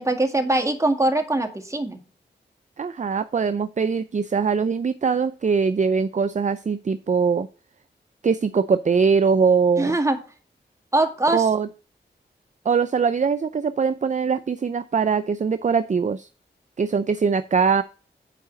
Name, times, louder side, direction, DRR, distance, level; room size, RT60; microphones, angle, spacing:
voice 1, 0.0-2.0 9.8-10.2 10.9-11.4, right 2 dB, 15° right, 4 dB, 1.9 m, -22 dB
voice 2, 2.8-7.5 8.2-10.0 11.3-11.7 12.7-16.3 16.8-17.8, right 5 dB, 40° right, 13 dB, 0.5 m, -22 dB
8.3 x 4.8 x 7.0 m, 0.37 s
cardioid pair, 45°, 19 cm